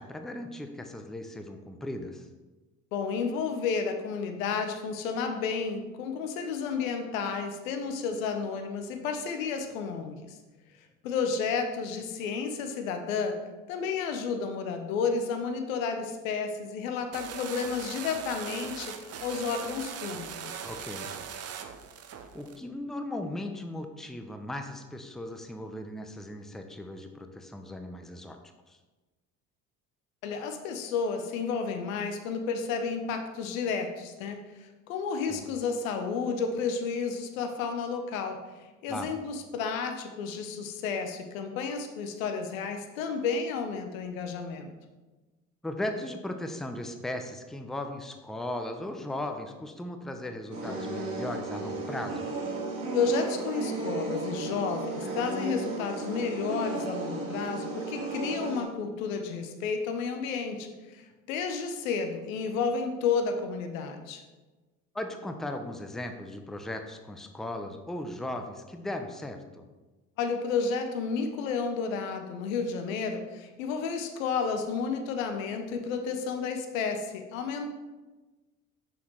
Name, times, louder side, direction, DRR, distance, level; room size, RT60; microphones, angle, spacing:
voice 1, 0.0-2.3 20.6-21.1 22.3-28.4 28.7-28.8 35.3-35.4 38.9-39.1 45.6-52.3 64.9-69.7, left 1 dB, ahead, 6 dB, 0.6 m, -37 dB
voice 2, 2.9-10.4 11.0-20.7 30.2-38.4 38.8-44.7 52.9-64.2 70.2-77.7, left 5 dB, 75° left, 6 dB, 0.8 m, -31 dB
sound 1, 17.1-22.6, right 8 dB, 40° right, 0.7 m, -40 dB
sound 2, 50.5-58.6, right 2 dB, 75° right, 1.7 m, -34 dB
6.3 x 5.8 x 3.1 m, 1.2 s
hypercardioid pair, 55°, 40 cm